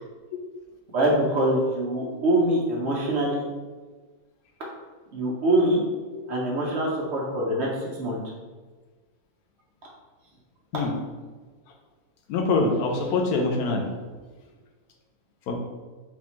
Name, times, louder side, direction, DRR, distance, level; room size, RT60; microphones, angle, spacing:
voice 1, 0.9-3.5 5.1-5.8 6.3-8.2, right 1 dB, 55° right, -3 dB, 0.8 m, -24 dB
voice 2, 12.3-13.9 15.5-15.6, left 3 dB, 80° left, 2 dB, 1.1 m, -24 dB
4.1 x 2.3 x 2.9 m, 1.4 s
omnidirectional pair, 1.6 m